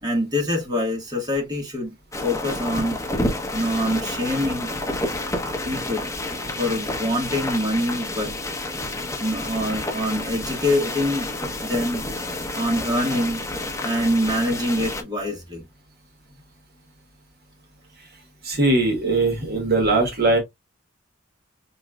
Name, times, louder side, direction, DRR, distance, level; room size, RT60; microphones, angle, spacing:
voice 1, 0.0-1.9 2.2-3.0 3.5-4.7 5.6-6.1 6.6-8.3 9.2-11.3 11.6-12.1 12.5-13.4 13.8-15.6, left 1 dB, 20° right, 1.5 m, -25 dB
sound 1, 2.1-15.0, left 1 dB, 15° left, 1.0 m, -29 dB
voice 2, 18.4-20.4, right 2 dB, 50° right, 1.3 m, -20 dB
4.7 x 3.1 x 2.3 m
head